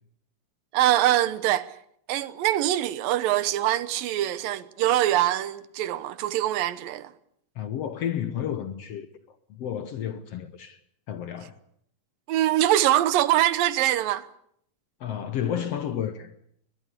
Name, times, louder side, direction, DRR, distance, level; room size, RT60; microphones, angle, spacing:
voice 1, 0.7-1.7 2.1-7.1 12.3-14.3, right 13 dB, 90° right, 2.8 m, -23 dB
voice 2, 7.6-9.1 9.5-10.8 11.1-11.5 15.0-16.3, left 9 dB, 65° left, 1.7 m, -31 dB
21.5 x 20.5 x 8.3 m
omnidirectional pair, 3.9 m